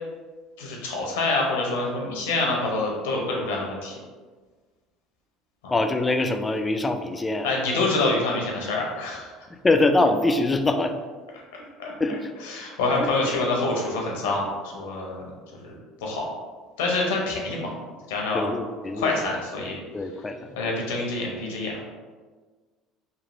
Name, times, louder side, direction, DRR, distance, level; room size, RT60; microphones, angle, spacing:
voice 1, 0.6-4.0 5.6-5.7 7.4-9.2 11.8-11.9 12.4-15.3 15.6-16.3 16.8-17.7 18.1-18.5 18.9-19.8 20.6-21.8, left 2 dB, 85° left, -1 dB, 0.7 m, -26 dB
voice 2, 5.7-7.5 9.6-10.9 12.0-12.3 13.0-13.1 18.3-19.3 19.9-20.8, left 2 dB, 20° left, 7 dB, 0.3 m, -24 dB
3.1 x 2.5 x 2.5 m, 1.4 s
hypercardioid pair, 80°, 0 cm